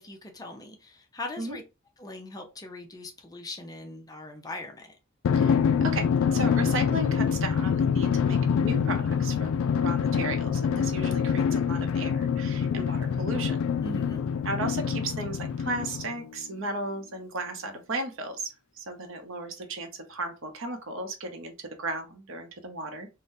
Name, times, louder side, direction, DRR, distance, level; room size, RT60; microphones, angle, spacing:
voice 1, 0.0-1.6 2.0-5.0 13.8-14.2, left 2 dB, 20° left, 0.5 m, -40 dB
Drum, 5.2-16.3, left 7 dB, 70° left, 0.3 m, -26 dB
voice 2, 5.3-13.6 14.4-23.1, right 2 dB, 70° right, 0.7 m, -35 dB
3.7 x 2.1 x 2.6 m
head